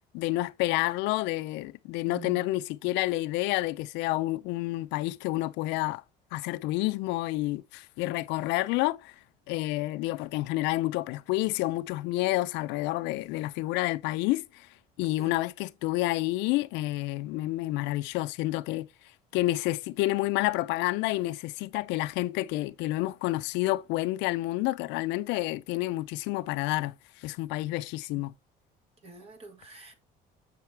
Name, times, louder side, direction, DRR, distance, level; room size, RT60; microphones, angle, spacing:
voice 1, 0.1-6.0 6.3-9.1 9.5-14.7 15.0-18.9 19.3-28.3, left 18 dB, 90° left, 0.5 m, -29 dB
voice 2, 2.0-2.4 15.2-15.4 29.0-29.9, right 5 dB, 35° right, 1.8 m, -46 dB
6.9 x 6.4 x 3.3 m
cardioid pair, 145°, 18 cm